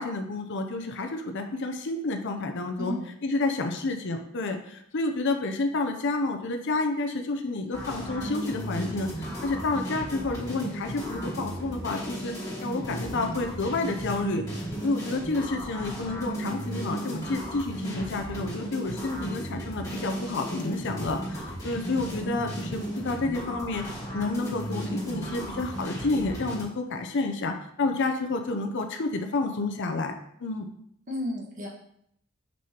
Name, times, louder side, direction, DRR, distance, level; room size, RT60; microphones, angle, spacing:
voice 1, 0.0-2.9 3.2-14.4 14.8-23.8 24.1-30.1 30.4-30.7, left 3 dB, 60° left, 5 dB, 0.6 m, -30 dB
voice 2, 2.8-3.1 31.1-31.7, left 1 dB, 40° right, -2 dB, 1.3 m, -32 dB
sound 1, 7.7-26.6, right 1 dB, 15° left, 2.6 m, -35 dB
6.2 x 5.4 x 2.9 m, 0.71 s
head